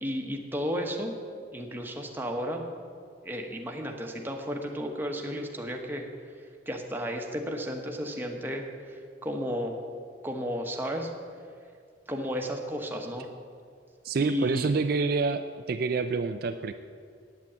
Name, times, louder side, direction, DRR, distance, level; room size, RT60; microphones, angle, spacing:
voice 1, 0.0-1.2 1.5-2.6 3.2-6.1 6.7-9.8 10.2-11.1 12.1-13.3 14.2-14.7, equal, 10° right, 2 dB, 1.1 m, -33 dB
voice 2, 14.0-16.7, right 4 dB, 50° right, 8 dB, 0.4 m, -27 dB
9.1 x 8.3 x 8.6 m, 2.2 s
head